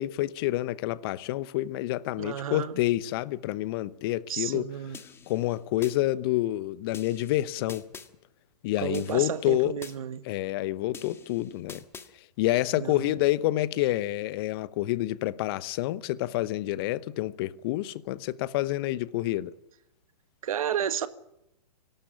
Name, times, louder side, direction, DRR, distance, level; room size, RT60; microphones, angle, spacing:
voice 1, 0.0-4.6 5.3-7.8 8.6-9.7 10.2-11.8 12.2-19.5, left 16 dB, 35° left, 0.8 m, -28 dB
voice 2, 2.1-2.8 4.3-5.0 8.8-10.2 12.8-13.1 20.4-21.1, right 9 dB, 60° right, 1.6 m, -32 dB
sound 1, 4.9-6.0 6.9-8.1 8.9-10.0 10.9-12.1, left 5 dB, 10° left, 1.4 m, -46 dB
25.0 x 12.5 x 9.9 m
figure-of-eight pair, 120°, 21 cm